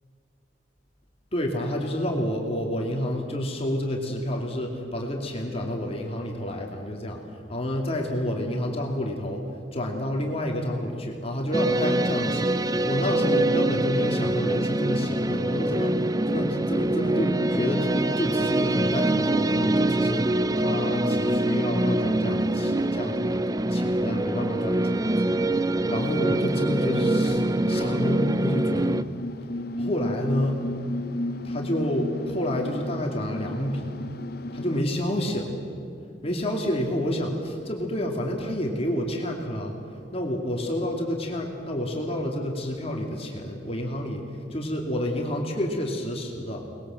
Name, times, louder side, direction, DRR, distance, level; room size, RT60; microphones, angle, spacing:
voice 1, 1.3-7.2 7.5-9.4 9.7-12.6 12.8-16.0 16.3-23.4 23.7-25.2 25.5-28.9 29.8-30.6 31.4-33.9 34.5-35.5 36.2-39.7 40.1-46.6, left 1 dB, 35° left, 1 dB, 2.5 m, -29 dB
sound 1, 11.5-29.0, right 1 dB, 20° right, 0.5 m, -24 dB
sound 2, 22.2-34.8, left 1 dB, 55° left, 0.9 m, -37 dB
24.0 x 20.5 x 7.7 m, 2.5 s
head